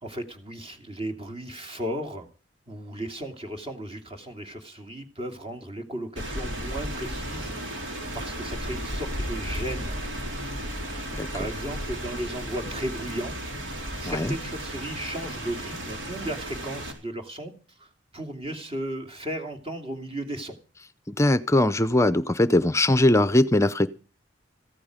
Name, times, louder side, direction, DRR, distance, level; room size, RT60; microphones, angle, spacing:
voice 1, 0.0-2.3 2.7-7.9 8.1-10.0 11.3-13.4 14.0-17.5 17.8-20.6, right 1 dB, 30° right, 2.6 m, -35 dB
Rain, 6.2-16.9, equal, 90° right, 4.3 m, -34 dB
voice 2, 21.1-23.9, left 1 dB, 15° left, 0.6 m, -21 dB
15.5 x 13.0 x 5.1 m
head